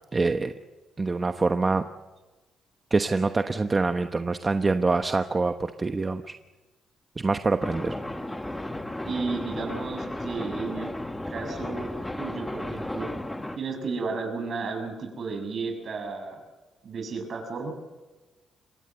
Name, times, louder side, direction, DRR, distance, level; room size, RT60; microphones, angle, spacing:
voice 1, 0.1-0.5 1.0-1.8 2.9-6.3 7.2-8.0, right 3 dB, 25° right, 8 dB, 1.1 m, -25 dB
sound 1, 7.6-13.6, left 1 dB, 10° left, 1.9 m, -34 dB
voice 2, 9.0-10.9 11.3-13.1 13.6-16.4 16.8-17.7, right 4 dB, 50° right, 5 dB, 6.9 m, -33 dB
27.0 x 22.0 x 7.8 m, 1.2 s
cardioid pair, 90°, 0 cm